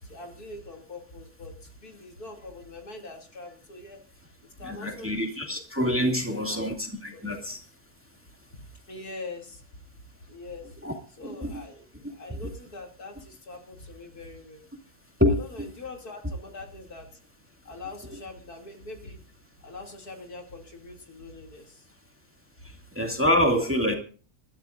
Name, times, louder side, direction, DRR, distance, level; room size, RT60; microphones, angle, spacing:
voice 1, 0.0-4.0 4.6-5.5 6.0-6.7 7.1-7.4 8.5-8.6 8.9-9.6 10.3-10.7 11.2-14.6 15.4-17.2 17.6-19.2 19.6-21.9 22.6-22.7, left 2 dB, 70° left, 2 dB, 3.2 m, -43 dB
voice 2, 4.6-7.6 10.8-10.9 11.4-11.6 12.3-12.4 15.2-15.7 23.0-24.0, left 1 dB, 10° right, 2 dB, 2.2 m, -26 dB
27.0 x 13.0 x 2.5 m, 0.40 s
omnidirectional pair, 1.7 m